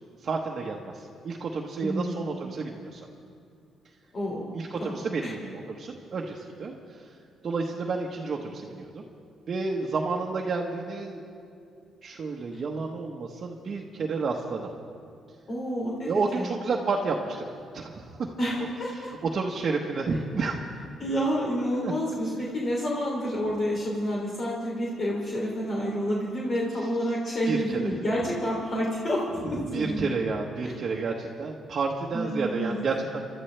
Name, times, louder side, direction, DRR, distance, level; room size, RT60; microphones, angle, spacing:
voice 1, 0.2-3.0 4.5-7.1 7.4-9.0 9.5-11.2 12.0-14.7 16.0-17.4 17.7-18.3 18.6-18.7 18.9-20.6 21.8-21.9 27.5-27.8 29.4-33.2, right 4 dB, 50° right, -1 dB, 1.2 m, -30 dB
voice 2, 1.8-2.2 4.1-4.5 4.8-5.3 15.5-16.5 18.4-19.1 21.0-30.1 30.6-30.7 32.1-32.8, equal, 45° left, -4 dB, 2.9 m, -29 dB
29.0 x 12.5 x 3.4 m, 2.4 s
cardioid pair, 90°, 0 cm